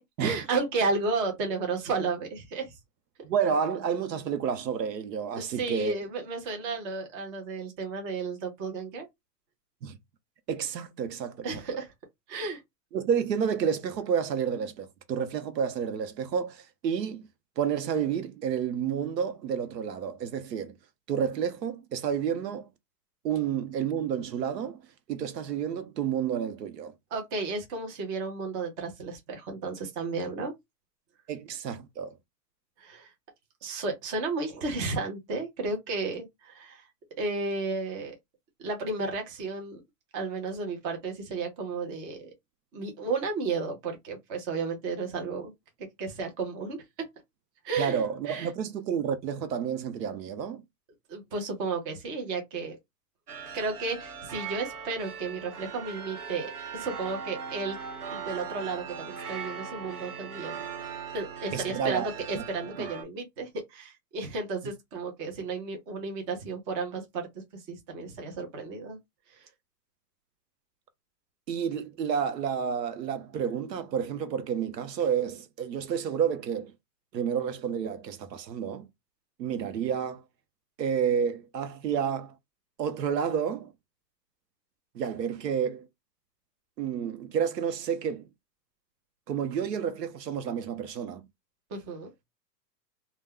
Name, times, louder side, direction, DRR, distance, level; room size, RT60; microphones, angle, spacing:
voice 1, 0.0-2.8 5.4-9.1 11.4-11.9 12.3-12.6 27.1-30.5 32.8-33.1 33.6-36.8 37.2-38.2 38.6-39.8 40.1-42.3 42.7-45.5 46.0-46.8 47.6-48.5 51.1-52.8 53.5-57.8 58.1-60.7 61.1-67.3 67.7-69.0 69.4-69.5 91.7-92.1, right 3 dB, 20° right, 0.5 m, -33 dB
voice 2, 3.2-5.9 9.8-10.0 10.5-11.5 12.9-17.2 17.6-20.8 21.1-22.7 23.2-24.8 25.1-26.9 31.3-32.1 47.8-50.6 61.5-62.1 62.3-62.4 62.8-62.9 71.5-76.7 77.1-78.9 79.4-80.2 80.8-82.4 82.8-83.7 84.9-85.9 86.8-88.3 89.3-91.3, right 7 dB, 80° right, 0.8 m, -30 dB
sound 1, 53.3-63.0, right 6 dB, 65° right, 1.1 m, -39 dB
2.2 x 2.1 x 3.4 m
hypercardioid pair, 135°, 49 cm